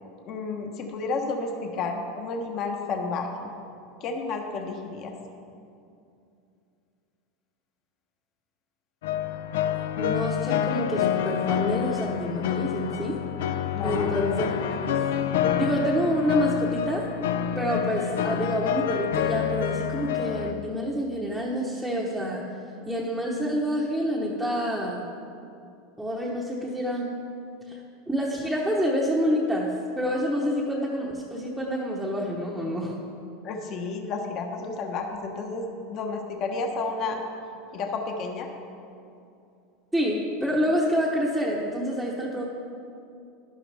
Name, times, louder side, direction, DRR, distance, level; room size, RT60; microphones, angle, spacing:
voice 1, 0.3-3.5 4.0-5.1 13.7-14.1 33.4-37.2 37.7-38.5, left 4 dB, 40° left, 3 dB, 1.1 m, -31 dB
sound 1, 9.0-20.5, left 9 dB, 85° left, 0.5 m, -27 dB
voice 2, 10.0-13.2 13.8-15.0 15.5-17.1 17.5-22.4 22.9-25.0 26.0-27.1 27.7-33.0 39.9-42.4, equal, ahead, -5 dB, 0.9 m, -27 dB
11.5 x 11.0 x 3.4 m, 2.6 s
supercardioid pair, 150°, 0 cm